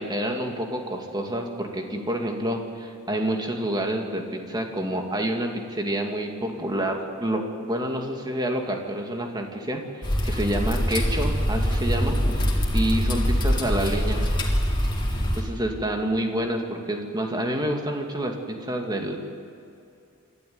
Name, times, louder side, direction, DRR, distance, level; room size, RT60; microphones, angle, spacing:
voice 1, 0.0-12.5 12.7-14.3 15.4-19.2, right 1 dB, 20° right, 2 dB, 2.4 m, -28 dB
sound 1, 10.0-15.4, equal, 25° left, 3.2 m, -24 dB
27.5 x 12.5 x 9.5 m, 2.6 s
head